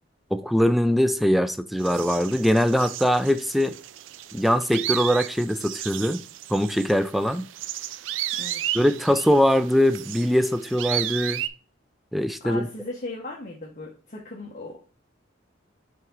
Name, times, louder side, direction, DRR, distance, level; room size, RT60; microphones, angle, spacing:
voice 1, 0.3-3.8 4.3-6.2 6.5-7.5 8.7-11.4 12.1-12.7, equal, ahead, 0.3 m, -22 dB
sound 1, 1.8-11.5, right 12 dB, 80° right, 0.4 m, -34 dB
voice 2, 12.4-14.8, left 2 dB, 40° left, 1.3 m, -37 dB
5.9 x 3.7 x 4.6 m
head